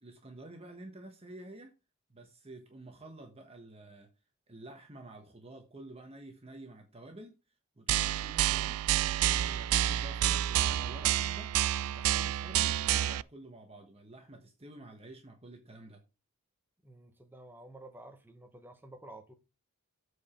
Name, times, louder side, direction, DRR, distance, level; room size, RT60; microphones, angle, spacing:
voice 1, 0.0-1.7 2.1-4.1 4.5-7.3 7.8-8.9 9.2-11.5 11.8-16.0, right 1 dB, 25° right, 1.3 m, -50 dB
sound 1, 7.9-13.2, right 12 dB, 75° right, 0.3 m, -29 dB
voice 2, 16.8-19.3, right 1 dB, 10° right, 1.0 m, -51 dB
8.1 x 4.9 x 5.8 m
head